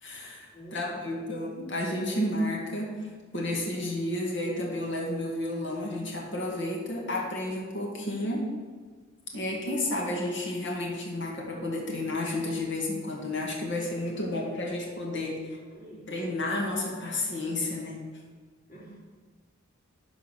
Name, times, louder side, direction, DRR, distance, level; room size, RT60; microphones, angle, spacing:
voice 1, 0.0-8.5 9.3-15.6 16.1-18.0, left 1 dB, 65° left, -2 dB, 2.1 m, -31 dB
voice 2, 0.5-1.4 15.4-16.1 18.7-19.0, equal, 50° left, -6 dB, 3.1 m, -48 dB
11.5 x 4.7 x 5.8 m, 1.5 s
head